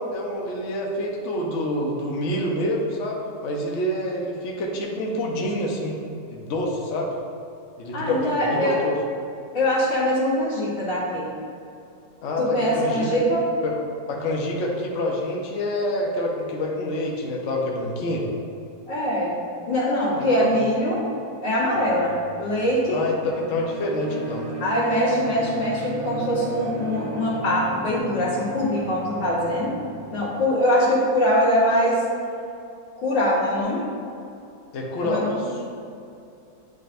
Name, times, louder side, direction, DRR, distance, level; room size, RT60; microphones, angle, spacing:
voice 1, 0.0-6.0 6.3-7.1 7.8-9.0 12.2-13.1 13.6-13.7 14.1-18.3 20.2-20.5 22.9-24.5 34.7-35.6, left 1 dB, 50° left, -1 dB, 1.0 m, -27 dB
voice 2, 7.9-8.8 9.5-11.3 12.4-13.4 18.9-19.3 19.7-21.0 21.4-22.1 22.4-23.0 24.6-29.8 30.1-32.0 33.0-33.9 35.0-35.4, equal, 75° left, -13 dB, 2.2 m, -22 dB
sound 1, 21.7-30.3, right 2 dB, 65° right, 2.3 m, -36 dB
9.6 x 4.0 x 2.5 m, 2.6 s
omnidirectional pair, 2.0 m